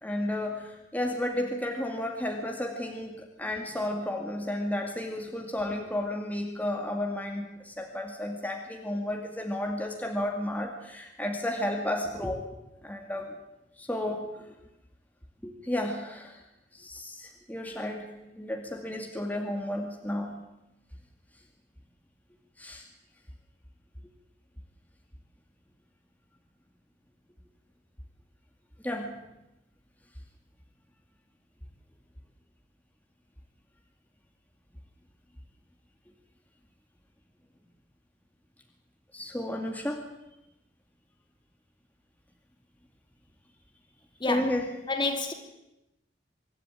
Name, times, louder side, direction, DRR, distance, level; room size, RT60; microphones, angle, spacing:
voice 1, 0.0-12.4 12.8-13.4 13.8-14.3 15.4-16.4 16.7-20.4 22.6-22.8 28.8-29.1 39.1-40.0 44.3-44.7, left 1 dB, 10° left, 2 dB, 2.3 m, -32 dB
voice 2, 44.2-44.6 44.9-45.3, left 3 dB, 25° left, 5 dB, 2.6 m, -29 dB
25.0 x 12.5 x 9.2 m, 0.93 s
head